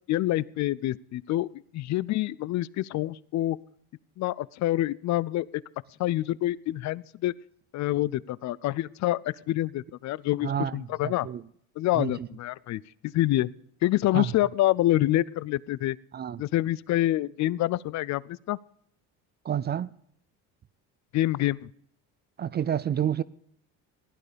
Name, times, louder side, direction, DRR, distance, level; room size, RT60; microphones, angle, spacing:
voice 1, 0.1-3.6 4.2-5.5 6.0-7.3 7.7-11.3 11.8-13.5 13.8-16.0 16.4-18.6 21.1-21.7, left 15 dB, 50° left, 0.5 m, -27 dB
voice 2, 10.4-10.7 11.0-11.4 12.0-12.3 14.1-14.3 16.1-16.4 19.5-19.9 22.4-23.2, right 9 dB, 30° right, 0.4 m, -29 dB
16.0 x 11.0 x 5.1 m
supercardioid pair, 105°, 37 cm